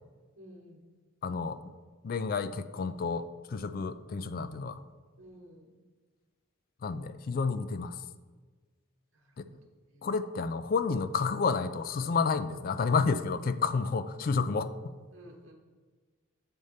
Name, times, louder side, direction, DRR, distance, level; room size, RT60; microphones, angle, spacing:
voice 1, 0.4-0.9 5.2-5.8 9.1-10.1 14.5-14.6 15.1-15.5, equal, 65° right, 0 dB, 1.1 m, -54 dB
voice 2, 1.2-1.6 2.0-4.8 6.8-8.0 9.4-9.5 10.0-14.7, left 5 dB, 45° left, 12 dB, 0.3 m, -30 dB
7.9 x 4.2 x 5.0 m, 1.4 s
head